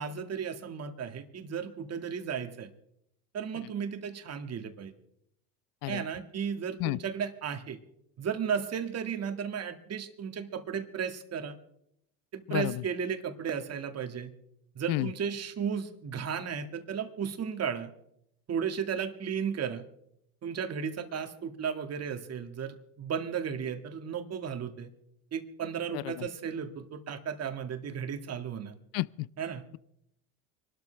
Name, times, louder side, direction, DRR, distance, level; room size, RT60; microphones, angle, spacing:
voice 1, 0.0-2.7 3.3-4.9 5.9-7.8 8.2-11.6 12.3-14.3 14.8-17.9 18.5-19.8 20.4-24.9 25.3-28.7 29.4-29.6, right 7 dB, 35° right, 2.0 m, -34 dB
voice 2, 25.9-26.3 28.9-29.3, left 19 dB, 55° left, 0.5 m, -31 dB
25.5 x 13.0 x 3.4 m
supercardioid pair, 90°, 42 cm